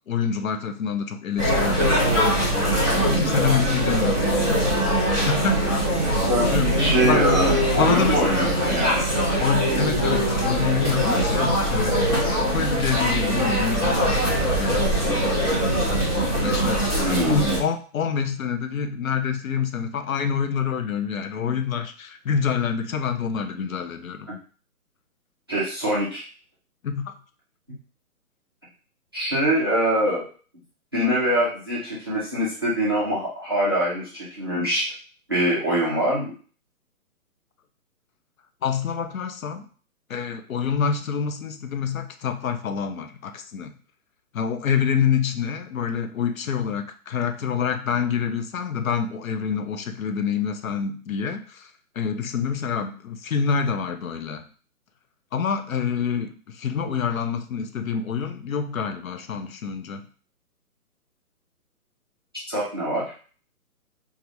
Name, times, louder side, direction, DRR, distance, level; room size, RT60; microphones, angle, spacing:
voice 1, 0.1-2.1 2.8-4.4 5.2-5.6 6.5-7.3 7.7-8.3 9.3-12.2 12.5-15.5 16.4-24.3 26.8-27.1 38.6-39.7 40.1-43.7 44.3-51.7 52.0-54.5 55.3-60.0, left 7 dB, 65° left, 7 dB, 0.5 m, -27 dB
sound 1, 1.4-17.6, right 1 dB, 15° left, 0.7 m, -22 dB
voice 2, 6.3-9.1 17.0-17.6 24.3-24.4 25.5-26.2 29.1-30.2 30.9-34.8 35.3-36.3 62.5-63.0, right 1 dB, 15° right, -9 dB, 0.5 m, -24 dB
3.2 x 2.4 x 2.6 m, 0.40 s
hypercardioid pair, 155°, 45 cm